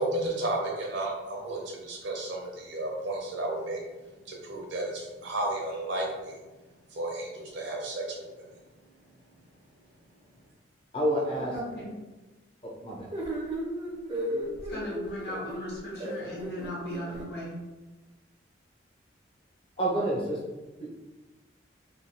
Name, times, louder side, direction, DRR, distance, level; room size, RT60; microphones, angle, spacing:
voice 1, 0.0-3.8 4.2-6.4 6.9-8.5, right 2 dB, 75° right, -1 dB, 0.7 m, -33 dB
voice 2, 10.9-11.5 12.8-13.1 19.8-20.4 20.8-20.9, right 1 dB, 30° left, -3 dB, 0.6 m, -28 dB
sound 1, 13.1-17.3, equal, 25° right, 0.5 m, -35 dB
voice 3, 14.7-17.5, equal, 55° left, -5 dB, 0.9 m, -38 dB
3.2 x 2.3 x 2.7 m, 1.1 s
head